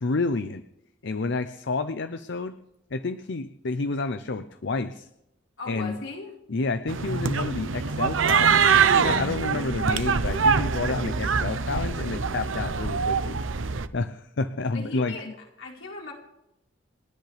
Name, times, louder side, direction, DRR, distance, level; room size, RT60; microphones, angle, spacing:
voice 1, 0.0-0.6 1.0-2.6 2.9-5.1 5.7-6.0 6.5-13.4 13.9-15.3, left 3 dB, 65° left, 11 dB, 0.7 m, -29 dB
voice 2, 5.6-6.4 14.7-15.3 15.6-16.1, left 3 dB, 80° left, -1 dB, 4.6 m, -38 dB
sound 1, 6.9-13.9, right 6 dB, 85° right, 0.8 m, -24 dB
30.0 x 10.5 x 3.4 m, 0.86 s
head